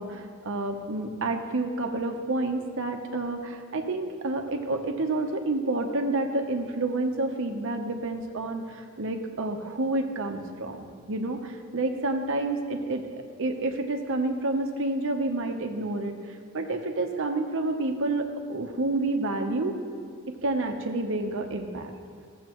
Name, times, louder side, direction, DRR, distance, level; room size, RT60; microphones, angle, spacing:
voice 1, 0.0-13.0 13.4-19.8 20.4-21.9, right 2 dB, 60° right, 4 dB, 0.9 m, -29 dB
15.0 x 7.3 x 3.0 m, 2.3 s
head